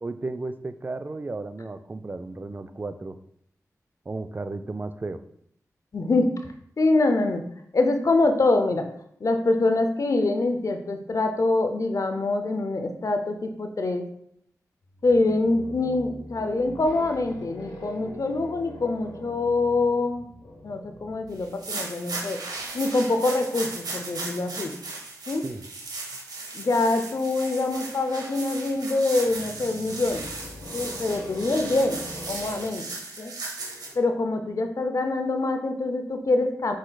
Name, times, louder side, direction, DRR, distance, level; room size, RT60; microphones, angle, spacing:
voice 1, 0.0-3.2 4.1-5.2 25.4-25.6, right 3 dB, 30° right, 10 dB, 0.3 m, -34 dB
voice 2, 5.9-7.5 7.7-8.9 9.2-14.1 15.0-20.3 20.6-22.4 22.7-24.7 25.3-25.4 26.5-30.3 30.7-32.9 33.2-33.3 34.0-36.8, left 2 dB, 55° left, 6 dB, 0.6 m, -25 dB
sound 1, 14.8-21.6 29.2-32.5, left 1 dB, 80° left, 0.9 m, -42 dB
sound 2, 21.4-33.9, right 3 dB, 85° right, 0.8 m, -36 dB
4.5 x 4.2 x 2.3 m, 0.70 s
cardioid pair, 40°, 6 cm